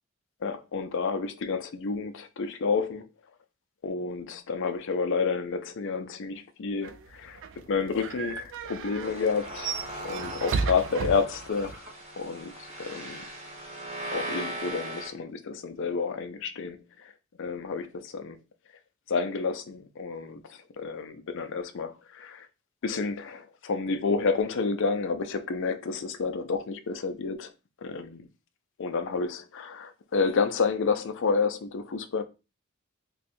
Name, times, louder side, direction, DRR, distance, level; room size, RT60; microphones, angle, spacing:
voice 1, 0.4-3.0 3.8-7.4 7.7-11.8 12.2-13.3 14.1-17.1 17.4-18.4 19.1-22.5 22.8-27.5 27.8-28.3 28.8-32.2, left 5 dB, 60° left, 0.5 m, -30 dB
sound 1, 6.8-11.8, right 5 dB, 65° right, 0.4 m, -35 dB
sound 2, 9.0-15.1, right 1 dB, 30° right, 0.9 m, -39 dB
2.6 x 2.3 x 4.1 m
head